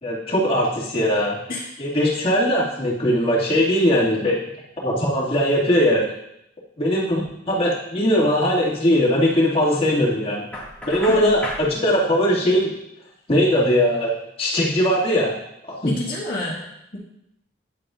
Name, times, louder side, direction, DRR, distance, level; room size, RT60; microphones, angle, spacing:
voice 1, 0.0-1.4 1.8-4.4 4.8-6.0 6.8-10.4 10.9-12.7 13.3-14.1 14.4-15.3 15.7-15.9, equal, 35° left, -7 dB, 2.2 m, -20 dB
Knock, 10.5-11.7, left 1 dB, 10° left, 2.0 m, -32 dB
voice 2, 10.9-11.3 15.9-16.6, left 2 dB, 55° left, -6 dB, 1.9 m, -28 dB
9.5 x 8.4 x 2.5 m, 0.81 s
head